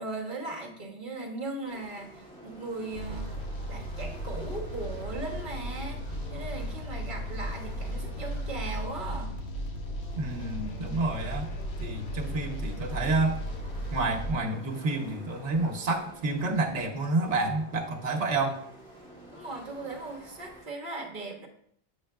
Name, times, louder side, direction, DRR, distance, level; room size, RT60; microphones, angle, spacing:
voice 1, 0.0-3.4 3.7-6.0 6.3-9.4 19.3-21.5, right 2 dB, 50° right, 0 dB, 1.2 m, -38 dB
sound 1, 1.6-20.6, right 1 dB, 5° left, 2.0 m, -50 dB
sound 2, 2.9-14.3, equal, 70° left, 1.0 m, -36 dB
voice 2, 10.2-11.5 11.8-13.4 13.9-18.6, right 2 dB, 80° right, 2 dB, 1.2 m, -29 dB
8.0 x 5.5 x 2.3 m, 0.66 s
omnidirectional pair, 1.2 m